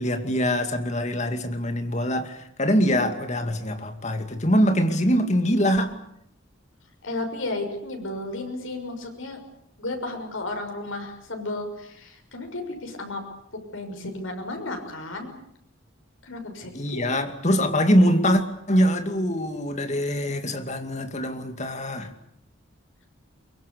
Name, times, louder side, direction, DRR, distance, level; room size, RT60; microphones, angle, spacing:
voice 1, 0.0-5.9 16.7-22.1, equal, 35° left, 2.4 m, -23 dB
voice 2, 7.0-9.4 9.8-13.2 13.7-15.3 16.2-17.1, left 2 dB, 90° left, 6.1 m, -33 dB
23.0 x 23.0 x 8.5 m
head